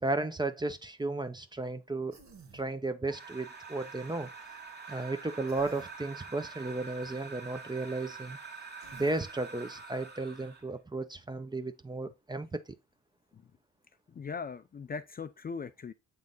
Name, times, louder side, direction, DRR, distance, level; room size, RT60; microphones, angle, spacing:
voice 1, 0.0-2.2 2.5-4.3 4.9-8.4 8.9-12.6, right 2 dB, 15° right, 0.8 m, -34 dB
Human voice, 2.1-2.7 5.5-5.9 8.8-9.3, right 4 dB, 65° right, 1.8 m, -54 dB
sound 1, 3.1-10.7, right 4 dB, 35° right, 1.9 m, -46 dB
voice 2, 14.1-15.9, left 5 dB, 30° left, 0.5 m, -39 dB
7.6 x 3.6 x 3.9 m
cardioid pair, 90°, 30 cm